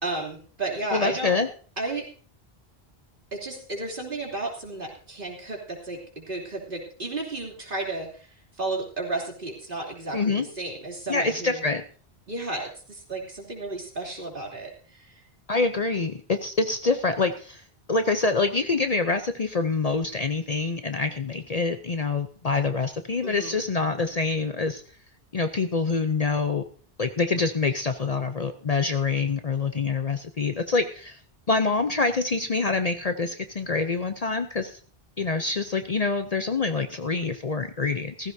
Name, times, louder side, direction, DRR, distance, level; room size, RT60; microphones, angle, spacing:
voice 1, 0.0-1.3 1.8-2.1 3.3-8.3 8.6-11.6 12.3-15.2 23.2-23.6, right 2 dB, 55° right, -1 dB, 3.3 m, -33 dB
voice 2, 0.9-1.5 10.1-10.4 11.1-11.8 15.5-17.6 17.9-24.8 25.3-26.6 27.0-31.2 31.5-34.8 35.2-38.3, left 4 dB, 40° left, 8 dB, 0.7 m, -26 dB
16.0 x 15.0 x 2.7 m, 0.41 s
omnidirectional pair, 1.1 m